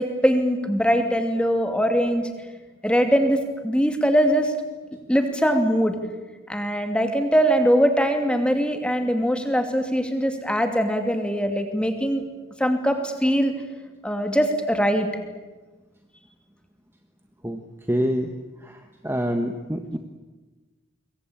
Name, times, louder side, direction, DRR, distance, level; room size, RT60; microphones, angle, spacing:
voice 1, 0.0-2.3 2.8-4.5 5.1-6.0 6.5-12.2 12.6-13.5 14.0-15.1, equal, 5° left, 5 dB, 2.6 m, -21 dB
voice 2, 17.9-18.3 18.6-18.8 19.0-20.0, equal, 10° right, 6 dB, 1.2 m, -25 dB
26.5 x 22.5 x 8.7 m, 1.3 s
head